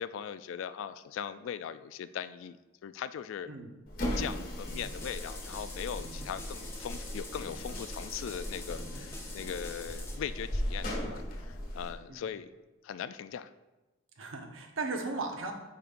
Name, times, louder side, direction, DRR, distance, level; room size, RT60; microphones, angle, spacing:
voice 1, 0.0-2.6 2.8-3.5 4.2-12.5 12.8-13.5, left 8 dB, 70° left, 15 dB, 0.3 m, -40 dB
sound 1, 3.9-11.9, equal, 50° left, 1.2 m, -38 dB
sound 2, 4.7-10.2, left 2 dB, 10° left, 0.7 m, -46 dB
voice 2, 14.2-15.5, right 3 dB, 80° right, 4 dB, 0.9 m, -36 dB
8.5 x 5.1 x 2.5 m, 1.1 s
head